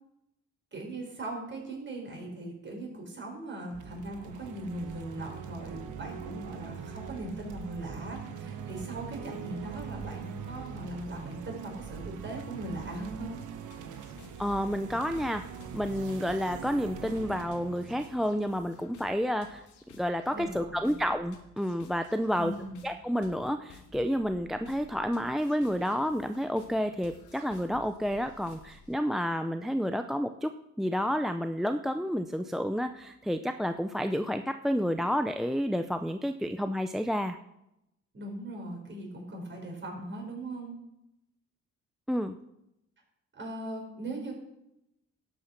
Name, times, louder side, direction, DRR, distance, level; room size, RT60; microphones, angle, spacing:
voice 1, 0.7-13.4 20.3-20.9 22.3-22.8 38.1-40.8 43.4-44.4, right 1 dB, 40° right, 1 dB, 4.9 m, -39 dB
sound 1, 3.7-19.1, right 7 dB, 80° right, 1.4 m, -42 dB
sound 2, 13.7-28.9, left 5 dB, 85° left, 2.0 m, -55 dB
voice 2, 14.4-15.4 15.7-19.6 20.0-22.5 22.8-37.4 42.1-42.4, equal, ahead, 7 dB, 0.5 m, -30 dB
12.0 x 8.3 x 5.8 m, 0.84 s
cardioid pair, 90°, 30 cm